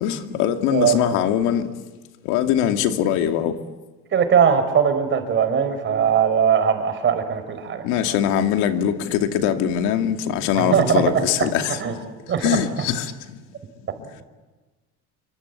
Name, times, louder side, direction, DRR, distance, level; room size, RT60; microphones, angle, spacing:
voice 1, 0.0-1.6 2.3-3.5 7.8-11.8 12.4-13.1, left 9 dB, 85° left, 2.5 m, -22 dB
voice 2, 0.7-1.0 4.1-8.1 10.6-11.5 11.8-12.0 12.3-12.6, right 7 dB, 40° right, 5.2 m, -20 dB
28.0 x 25.0 x 8.5 m
cardioid pair, 125°, 30 cm